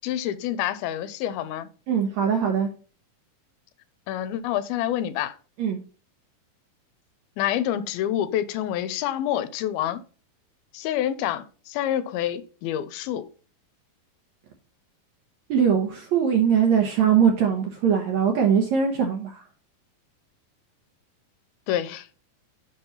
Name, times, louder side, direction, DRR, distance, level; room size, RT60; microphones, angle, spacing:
voice 1, 0.0-1.7 4.1-5.3 7.4-10.0 10.7-13.3 21.7-22.0, left 11 dB, 85° left, 2.6 m, -27 dB
voice 2, 1.9-2.7 5.6-5.8 15.5-19.4, right 7 dB, 70° right, 1.8 m, -21 dB
7.4 x 5.5 x 3.9 m
omnidirectional pair, 4.3 m